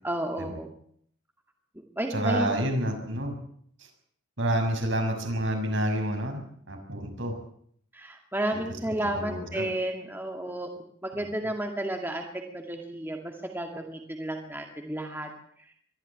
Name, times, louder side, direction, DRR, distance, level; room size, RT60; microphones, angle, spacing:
voice 1, 0.0-0.7 2.0-2.6 7.9-10.7 11.0-15.3, right 1 dB, 10° right, 3 dB, 2.3 m, -32 dB
voice 2, 2.1-3.4 3.8-3.9 4.4-7.4 8.5-8.6 9.0-9.7 11.1-11.3, right 1 dB, 65° right, 4 dB, 6.3 m, -29 dB
23.0 x 14.5 x 8.8 m, 0.64 s
head